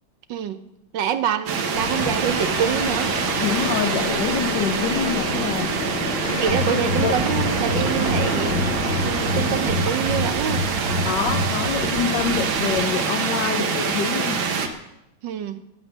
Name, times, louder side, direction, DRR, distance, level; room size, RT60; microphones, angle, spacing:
voice 1, 0.3-0.6 0.9-3.2 6.4-8.5 9.0-10.6 15.2-15.6, right 9 dB, 75° right, 11 dB, 1.5 m, -26 dB
sound 1, 1.5-14.7, right 5 dB, 90° right, 2.0 m, -25 dB
sound 2, 1.7-9.7, left 9 dB, 90° left, 0.6 m, -32 dB
voice 2, 3.4-5.7 6.7-7.2 11.0-14.4, left 8 dB, 70° left, 6 dB, 1.4 m, -26 dB
sound 3, 6.5-12.9, left 1 dB, 50° right, 2.6 m, -27 dB
19.5 x 7.9 x 6.5 m, 0.88 s
omnidirectional pair, 2.1 m